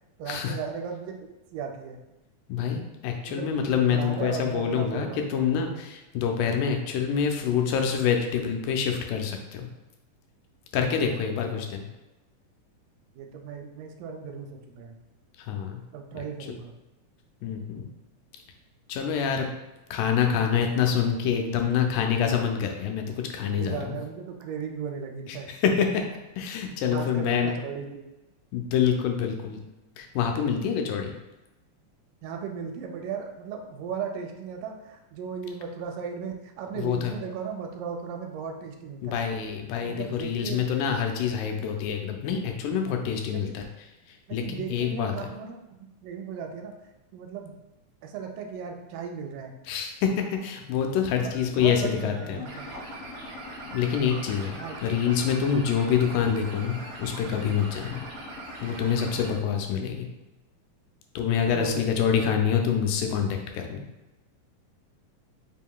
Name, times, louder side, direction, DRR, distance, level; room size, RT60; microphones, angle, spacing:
voice 1, 0.2-2.0 3.3-5.2 10.8-11.5 13.2-15.0 15.9-16.8 23.5-25.5 26.9-28.1 32.2-39.2 39.8-40.7 43.3-43.5 44.3-45.6 46.0-46.7 47.1-47.6 48.0-49.5 51.2-52.7 54.5-55.2 61.5-61.9, right 6 dB, 85° right, 3 dB, 2.1 m, -36 dB
voice 2, 2.5-9.7 10.7-11.8 15.5-15.8 17.4-17.9 18.9-19.5 19.9-23.9 25.3-26.0 26.4-27.6 28.5-29.6 30.0-31.1 36.8-37.1 39.0-43.6 44.3-45.1 49.7-50.1 50.4-52.4 53.7-54.6 54.8-58.0 58.6-60.1 61.2-63.8, left 7 dB, 85° left, 3 dB, 2.2 m, -26 dB
sound 1, 51.3-59.3, equal, 65° right, 1.7 m, -40 dB
5.0 x 3.7 x 2.2 m, 1.0 s
omnidirectional pair, 3.8 m